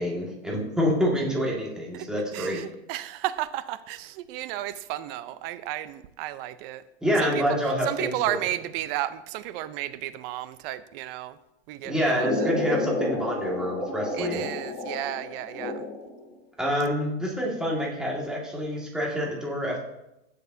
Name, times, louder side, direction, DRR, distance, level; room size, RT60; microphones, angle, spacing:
voice 1, 0.0-2.6 7.0-8.3 11.8-14.4 16.6-19.8, equal, ahead, -3 dB, 1.9 m, -27 dB
voice 2, 2.3-6.8 7.2-7.4 7.8-11.4 11.7-12.5 14.1-15.9, right 14 dB, 50° right, 13 dB, 0.6 m, -33 dB
sound 1, 12.2-16.2, left 2 dB, 25° left, 3.7 m, -30 dB
15.0 x 6.6 x 2.7 m, 0.87 s
supercardioid pair, 130°, 36 cm